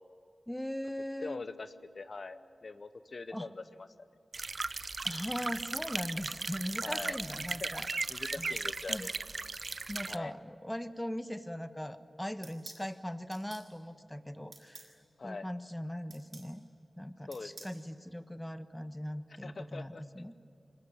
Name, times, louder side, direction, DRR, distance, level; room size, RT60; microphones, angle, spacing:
voice 1, 0.5-1.4 3.3-3.5 5.0-7.9 8.4-8.6 8.9-9.1 9.9-14.9 15.2-16.6 17.0-20.3, equal, 10° left, 11 dB, 1.3 m, -40 dB
voice 2, 1.2-3.9 6.8-7.7 8.1-9.1 10.1-10.3 15.2-15.5 17.3-17.7 19.4-20.0, left 3 dB, 60° left, 12 dB, 0.8 m, -43 dB
sound 1, 4.3-10.2, right 3 dB, 50° right, 0.6 m, -37 dB
sound 2, 12.4-12.8 13.3-13.7 14.5-14.9 16.1-16.5 17.3-17.8, right 3 dB, 75° right, 6.5 m, -50 dB
25.0 x 21.0 x 9.9 m, 2.9 s
wide cardioid pair, 75°, 0 cm